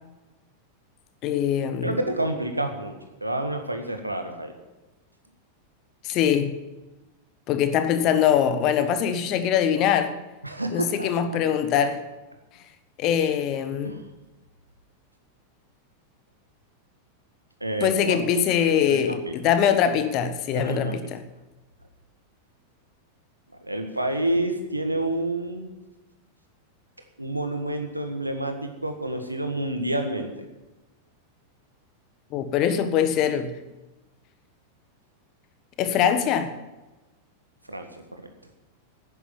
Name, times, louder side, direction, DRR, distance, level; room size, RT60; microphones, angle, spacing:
voice 1, 1.2-2.0 6.0-6.6 7.5-10.1 10.7-12.0 13.0-14.0 17.8-21.2 32.3-33.5 35.8-36.5, left 8 dB, 40° left, 1.4 m, -23 dB
voice 2, 1.8-2.9 3.2-4.5 10.4-11.4 13.8-14.0 17.6-18.2 18.8-19.3 20.5-20.9 23.6-25.7 27.2-30.5 37.7-38.3, right 1 dB, 85° right, 1.7 m, -29 dB
11.0 x 10.0 x 8.9 m
figure-of-eight pair, 90°, 0 cm